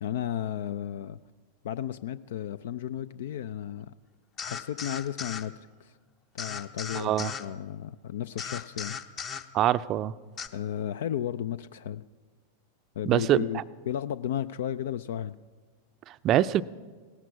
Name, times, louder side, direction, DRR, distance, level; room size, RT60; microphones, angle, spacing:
voice 1, 0.0-1.2 1.6-3.9 4.4-6.0 6.3-9.0 10.5-12.0 13.0-15.4, left 10 dB, 60° left, 16 dB, 0.3 m, -34 dB
sound 1, 4.4-5.5 6.4-7.5 8.4-9.5 10.4-10.5, left 6 dB, 30° left, 0.8 m, -36 dB
voice 2, 6.9-7.3 9.5-10.1 13.1-13.6 16.1-16.6, right 12 dB, 35° right, 14 dB, 0.5 m, -24 dB
17.5 x 13.5 x 5.7 m, 1.5 s
figure-of-eight pair, 90°, 0 cm